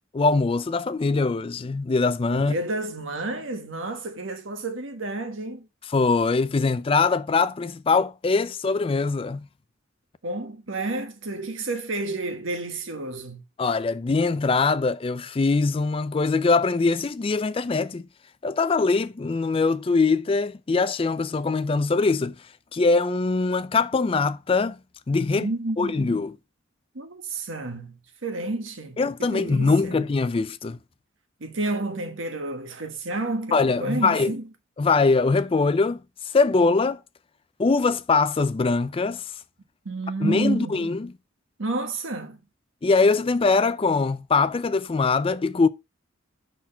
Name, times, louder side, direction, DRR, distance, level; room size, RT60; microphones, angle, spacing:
voice 1, 0.1-2.5 5.9-9.4 13.6-18.1 18.4-22.4 22.7-24.8 25.1-25.5 25.8-26.3 29.0-30.8 33.5-34.3 34.8-36.0 36.3-37.0 37.6-39.3 40.2-41.1 42.8-45.7, left 4 dB, 30° left, 0.4 m, -22 dB
voice 2, 2.4-5.7 10.2-13.4 25.3-26.2 26.9-30.0 31.4-34.5 39.8-40.9 41.6-42.4, right 2 dB, 75° right, 1.3 m, -30 dB
5.9 x 4.3 x 5.5 m
head